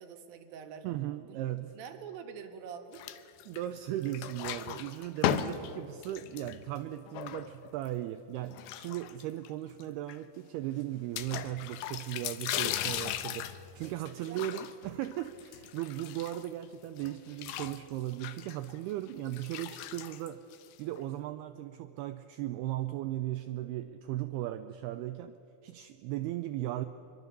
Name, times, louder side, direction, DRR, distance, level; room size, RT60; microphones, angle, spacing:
voice 1, 0.0-0.9 1.3-1.4 1.7-3.0 13.8-14.5, right 7 dB, 60° right, 5 dB, 2.9 m, -46 dB
voice 2, 0.8-1.7 3.5-20.4 20.8-26.9, right 13 dB, 90° right, 9 dB, 2.2 m, -37 dB
sound 1, 2.9-3.8 4.0-7.9 8.5-9.5 9.8-9.9 10.1-10.2 11.2-16.6 17.0-21.0, left 11 dB, 85° left, 2.2 m, -37 dB
24.5 x 23.5 x 6.8 m, 2.9 s
omnidirectional pair, 5.3 m